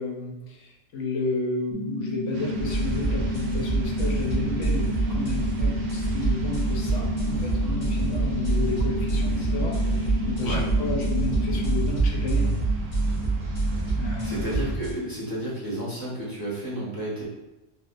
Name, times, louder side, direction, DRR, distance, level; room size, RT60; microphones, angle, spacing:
voice 1, 0.0-12.4 14.0-14.7, left 3 dB, 70° left, -2 dB, 1.0 m, -32 dB
sound 1, 1.7-11.7, left 2 dB, 45° right, 0.8 m, -31 dB
sound 2, 2.3-14.8, right 4 dB, 80° right, 1.0 m, -36 dB
sound 3, 2.6-14.9, right 3 dB, 40° left, 1.2 m, -27 dB
voice 2, 14.2-17.2, right 1 dB, 20° left, -9 dB, 1.0 m, -31 dB
3.5 x 2.5 x 2.5 m, 1.0 s
omnidirectional pair, 1.4 m